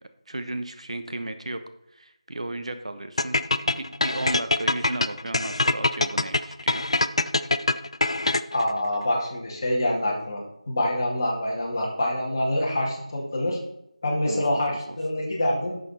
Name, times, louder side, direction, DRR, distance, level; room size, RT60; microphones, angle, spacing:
voice 1, 0.3-1.6 1.9-6.9 14.2-15.0, right 2 dB, 60° right, 9 dB, 1.0 m, -34 dB
sound 1, 3.2-8.7, left 2 dB, 55° left, 0.5 m, -23 dB
voice 2, 8.5-13.6 14.0-15.8, left 1 dB, 30° left, -2 dB, 2.3 m, -26 dB
10.5 x 6.9 x 4.3 m, 0.82 s
figure-of-eight pair, 170°, 4 cm